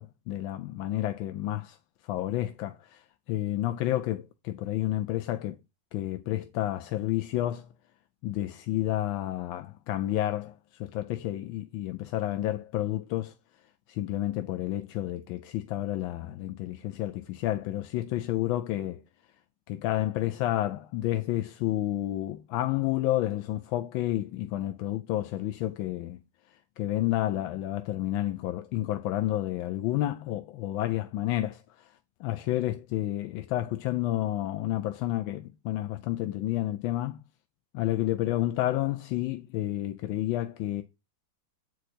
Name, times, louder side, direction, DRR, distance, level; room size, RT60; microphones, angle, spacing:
voice 1, 0.0-1.8 2.1-5.6 5.9-7.7 8.2-13.3 13.9-19.0 19.7-26.2 26.5-31.9 32.2-37.2 37.7-40.8, left 14 dB, 80° left, 1.3 m, -30 dB
7.9 x 4.7 x 4.2 m
omnidirectional pair, 2.1 m